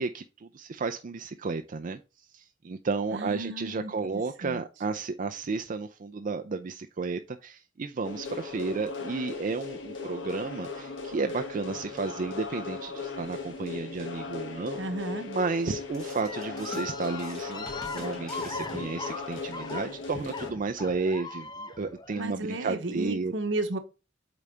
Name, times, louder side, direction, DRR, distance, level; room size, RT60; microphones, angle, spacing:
voice 1, 0.0-2.0 2.3-14.8 15.2-17.7 17.9-23.3, right 4 dB, 45° right, 0.4 m, -32 dB
voice 2, 3.1-4.6 14.8-15.3 22.2-23.8, right 2 dB, 70° right, 1.0 m, -33 dB
sound 1, 8.0-20.5, left 4 dB, 75° left, 1.4 m, -38 dB
sound 2, 15.9-19.3, equal, 5° left, 1.7 m, -48 dB
sound 3, 16.2-22.3, left 3 dB, 20° left, 0.6 m, -40 dB
8.4 x 4.0 x 3.3 m
head